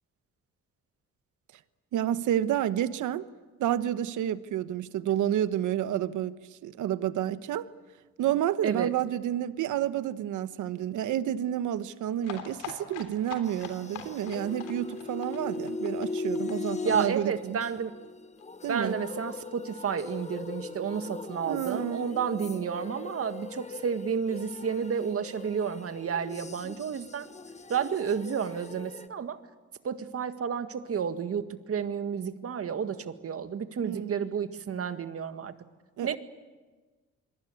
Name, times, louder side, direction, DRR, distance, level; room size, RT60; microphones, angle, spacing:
voice 1, 1.9-3.3 3.6-6.4 6.6-7.7 8.2-17.6 18.6-19.0 21.5-22.1 33.8-34.3 36.0-36.2, right 11 dB, 80° right, 1.1 m, -30 dB
voice 2, 8.6-8.9 16.8-17.9 18.7-27.3 27.7-29.4 29.8-35.5 36.0-36.2, right 7 dB, 50° right, 1.8 m, -31 dB
sound 1, 12.2-17.8 18.0-18.1 18.4-18.5 18.7-18.8, left 8 dB, 90° left, 3.5 m, -43 dB
sound 2, 13.4-29.1, left 4 dB, 25° left, 1.3 m, -39 dB
27.5 x 22.0 x 8.6 m
cardioid pair, 90°, 30 cm